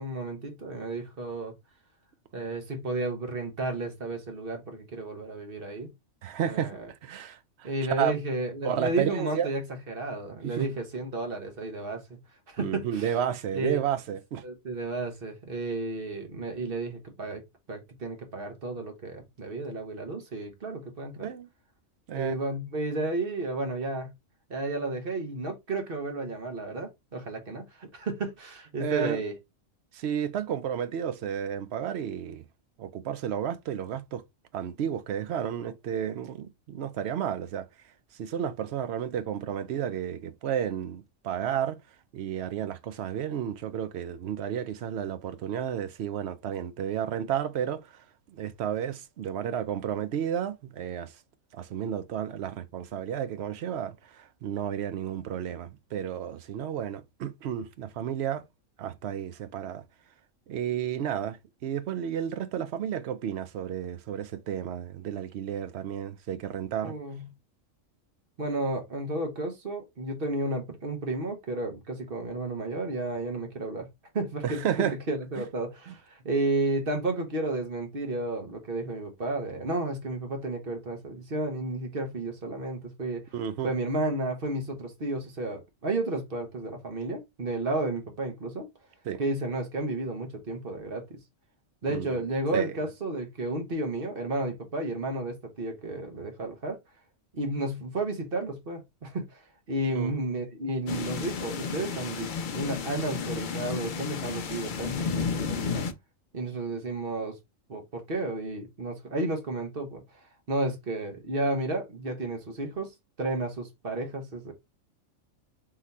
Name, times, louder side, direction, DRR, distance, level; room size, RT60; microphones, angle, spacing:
voice 1, 0.0-1.5 2.3-5.9 6.5-6.9 7.6-9.6 9.9-12.2 12.5-13.1 13.5-13.8 14.4-17.4 17.7-21.3 22.1-24.1 24.5-29.3 66.8-67.3 68.4-73.9 74.1-83.2 83.6-88.7 89.2-91.2 91.8-96.8 97.3-99.4 99.7-105.9 106.3-107.4 107.7-110.0 110.5-112.9 113.2-114.5, right 2 dB, 45° right, 1.3 m, -32 dB
voice 2, 6.2-8.1 8.6-9.5 10.4-10.7 12.6-14.4 21.2-21.5 22.1-22.4 28.8-29.2 29.9-32.4 32.8-34.2 34.5-37.7 38.2-41.8 42.1-51.1 51.5-58.4 58.8-59.8 60.5-67.0 74.4-74.9 75.9-76.0 83.3-83.7 89.0-89.3 91.9-92.1 92.5-92.8 99.9-100.1, right 9 dB, 65° right, 0.8 m, -32 dB
sound 1, 100.9-105.9, left 5 dB, 50° left, 0.6 m, -32 dB
3.9 x 3.2 x 4.0 m
omnidirectional pair, 1.4 m